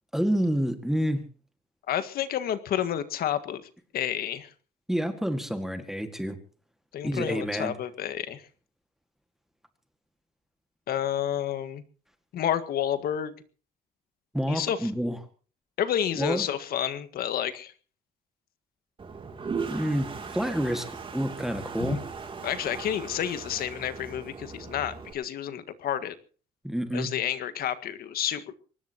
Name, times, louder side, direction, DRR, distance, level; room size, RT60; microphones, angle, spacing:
voice 1, 0.1-1.2 4.9-6.4 7.0-7.7 14.3-15.2 16.2-16.5 19.7-22.0 26.6-27.1, equal, ahead, 7 dB, 1.9 m, -28 dB
voice 2, 1.9-3.6 3.9-4.5 6.9-8.4 10.9-11.8 12.3-13.3 14.5-14.9 15.8-17.7 21.8-22.0 22.4-26.1 26.9-28.5, left 10 dB, 65° left, 11 dB, 1.8 m, -30 dB
Toilet flush, 19.0-25.1, right 5 dB, 30° right, 3.0 m, -38 dB
24.0 x 19.5 x 3.0 m, 0.40 s
cardioid pair, 110°, 17 cm